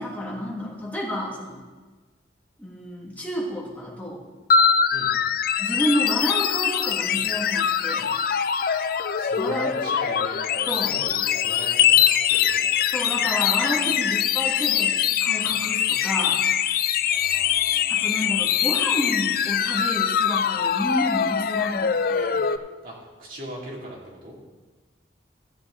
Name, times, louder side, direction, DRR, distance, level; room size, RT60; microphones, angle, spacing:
voice 1, 0.0-1.7 2.6-4.2 5.6-8.1 9.4-9.7 10.7-11.0 12.9-16.5 17.9-22.4, equal, 10° left, -4 dB, 1.8 m, -30 dB
sound 1, 4.5-22.6, left 8 dB, 55° left, 0.3 m, -23 dB
voice 2, 8.5-8.8 9.2-12.8 17.1-18.3 22.8-24.4, right 1 dB, 50° right, -4 dB, 2.5 m, -40 dB
14.0 x 7.8 x 3.7 m, 1.3 s
head